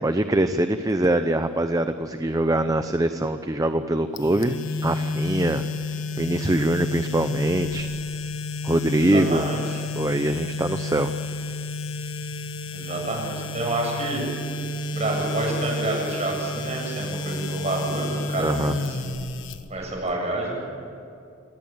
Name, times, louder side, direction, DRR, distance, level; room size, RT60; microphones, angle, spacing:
voice 1, 0.0-4.6 4.8-5.6 6.2-7.9 8.6-9.5 9.9-11.1 18.4-18.7, right 1 dB, 20° right, 9 dB, 0.7 m, -23 dB
sound 1, 4.2-20.1, left 2 dB, 80° left, 1.2 m, -31 dB
voice 2, 9.0-9.8 12.7-14.2 14.9-19.1 19.7-20.6, right 2 dB, 35° right, 0 dB, 7.4 m, -28 dB
26.5 x 17.5 x 9.0 m, 2.5 s
head